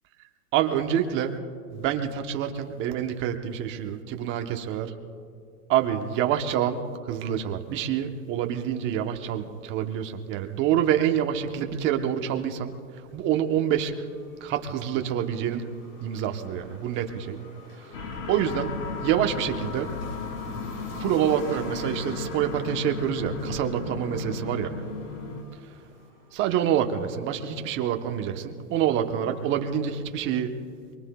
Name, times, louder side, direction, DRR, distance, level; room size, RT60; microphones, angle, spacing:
voice 1, 0.5-1.4 1.7-4.9 5.7-12.7 13.1-14.1 14.4-15.6 16.0-17.4 17.9-18.0 18.3-19.9 21.0-24.7 26.3-30.6, right 9 dB, 25° right, 5 dB, 1.0 m, -27 dB
sound 1, 13.1-27.5, equal, 35° left, 3.4 m, -49 dB
sound 2, 17.9-25.4, left 4 dB, 80° left, 3.0 m, -35 dB
24.5 x 23.5 x 2.3 m, 2.3 s
hypercardioid pair, 150°, 46 cm